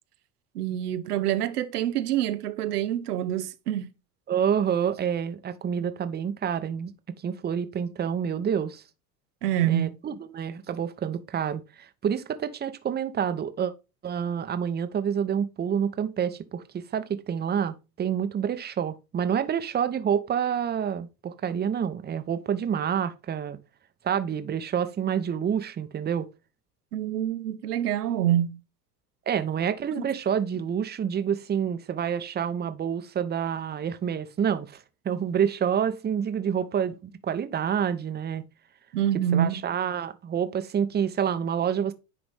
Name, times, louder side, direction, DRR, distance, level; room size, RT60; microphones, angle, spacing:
voice 1, 0.5-3.9 9.4-10.0 26.9-28.6 30.0-30.1 38.9-39.6, right 11 dB, 90° right, 0.7 m, -26 dB
voice 2, 4.3-6.9 7.2-8.8 9.7-13.7 14.0-23.6 24.0-26.3 29.3-38.4 39.3-41.9, right 8 dB, 20° right, 0.7 m, -28 dB
9.9 x 3.9 x 3.4 m
hypercardioid pair, 85°, 45 cm